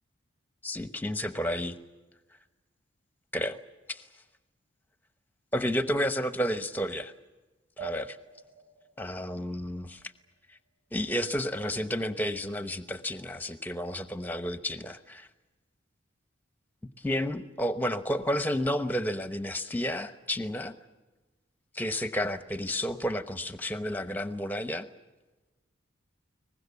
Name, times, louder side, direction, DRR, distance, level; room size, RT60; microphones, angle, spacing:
voice 1, 0.6-1.8 3.3-3.6 3.9-4.0 5.5-7.1 7.8-8.2 9.0-10.0 10.9-15.3 17.0-20.7 21.7-24.9, equal, 10° left, 10 dB, 0.9 m, -31 dB
sound 1, 7.8-10.7, right 3 dB, 25° right, 3.1 m, -46 dB
23.0 x 20.5 x 8.4 m, 1.2 s
head